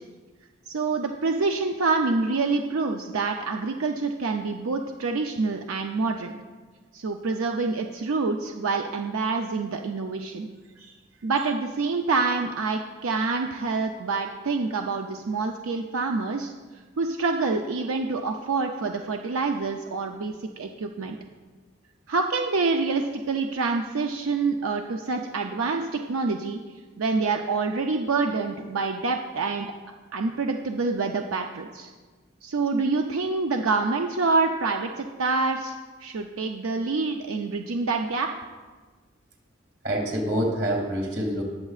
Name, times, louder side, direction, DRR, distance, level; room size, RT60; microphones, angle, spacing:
voice 1, 0.7-6.3 6.9-10.5 11.2-16.5 17.0-21.2 22.1-26.6 27.0-29.7 30.1-31.9 32.4-38.3, right 3 dB, 85° right, 4 dB, 0.5 m, -26 dB
voice 2, 39.8-41.4, right 1 dB, 50° right, 0 dB, 2.2 m, -26 dB
19.0 x 7.2 x 2.4 m, 1.4 s
head